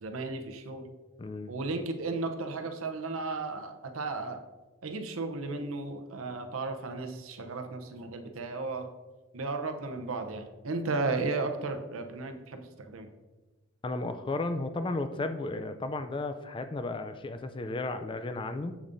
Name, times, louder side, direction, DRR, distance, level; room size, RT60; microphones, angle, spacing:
voice 1, 0.0-0.9 1.5-4.4 4.8-8.9 9.3-13.1, right 3 dB, 90° right, 6 dB, 0.7 m, -34 dB
voice 2, 1.2-1.7 13.8-18.8, left 2 dB, 25° left, 9 dB, 0.3 m, -34 dB
7.2 x 7.1 x 2.6 m, 1.2 s
head